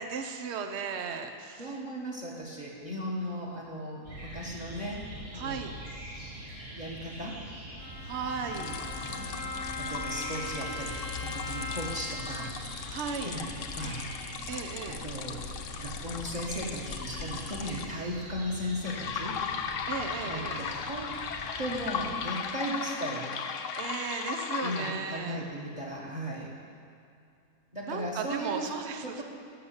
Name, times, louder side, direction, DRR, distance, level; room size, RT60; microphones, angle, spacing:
voice 1, 0.0-1.8 5.3-5.7 8.0-9.3 12.9-13.4 14.5-15.0 19.9-20.6 23.8-25.4 27.8-29.2, right 5 dB, 55° right, 6 dB, 1.1 m, -36 dB
voice 2, 1.6-5.0 5.3-5.7 6.7-7.4 8.5-9.4 9.8-10.9 11.2-12.5 13.2-14.0 14.9-15.5 15.8-19.4 20.2-21.1 21.6-23.3 24.6-26.5 27.7-28.7 29.0-29.2, equal, 30° right, -3 dB, 1.7 m, -36 dB
sound 1, 4.0-22.2, right 1 dB, 75° right, 4.7 m, -44 dB
Bowed string instrument, 7.8-12.8, left 2 dB, 30° left, 0.3 m, -40 dB
sound 2, 8.5-17.8 18.8-24.9, left 6 dB, 65° left, 1.1 m, -37 dB
18.0 x 6.7 x 7.2 m, 2.5 s
omnidirectional pair, 1.5 m